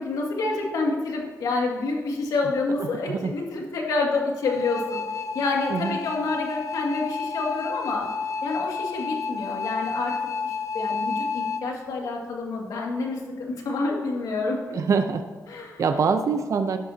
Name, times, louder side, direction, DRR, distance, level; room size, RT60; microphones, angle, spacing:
voice 1, 0.0-5.0 5.3-8.1 8.4-10.1 10.4-14.6 15.5-15.9, left 3 dB, 90° left, 0 dB, 2.1 m, -28 dB
voice 2, 2.8-3.3 5.7-6.0 14.7-15.2 15.8-16.8, right 5 dB, 60° right, 7 dB, 0.6 m, -24 dB
sound 1, 4.4-11.6, left 5 dB, 55° left, 0.7 m, -30 dB
13.0 x 11.5 x 2.8 m, 1.4 s
cardioid pair, 95°, 6 cm